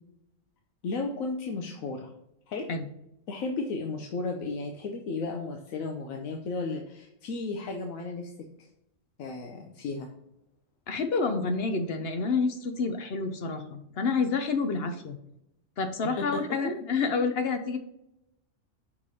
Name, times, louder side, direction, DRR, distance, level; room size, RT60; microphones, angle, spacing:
voice 1, 0.8-2.1 2.5-2.6 3.3-8.3 9.2-10.1 16.2-16.8, left 3 dB, 90° left, 2 dB, 1.1 m, -34 dB
voice 2, 10.9-15.2 15.8-17.8, left 4 dB, 55° left, 7 dB, 0.8 m, -28 dB
6.0 x 3.3 x 5.4 m, 0.84 s
omnidirectional pair, 1.4 m